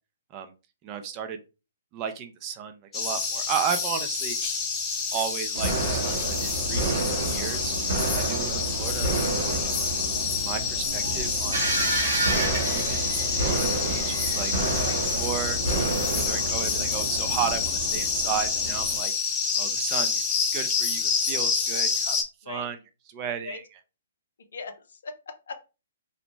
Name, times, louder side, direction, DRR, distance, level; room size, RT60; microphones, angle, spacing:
voice 1, 0.8-1.4 1.9-4.4 5.1-7.7 8.1-9.6 10.4-13.1 13.4-14.5 15.0-15.6 16.1-19.1 19.6-20.2 20.5-22.2 22.5-22.8 23.1-23.6, right 8 dB, 30° right, 8 dB, 0.4 m, -34 dB
sound 1, 2.9-22.2, left 5 dB, 20° left, 0.6 m, -28 dB
sound 2, 5.5-19.0, right 2 dB, 55° right, 0.9 m, -30 dB
sound 3, 11.5-15.3, right 1 dB, 80° right, 1.2 m, -30 dB
voice 2, 24.5-25.6, left 4 dB, 70° left, 8 dB, 0.5 m, -39 dB
2.6 x 2.0 x 3.0 m, 0.30 s
hypercardioid pair, 130°, 0 cm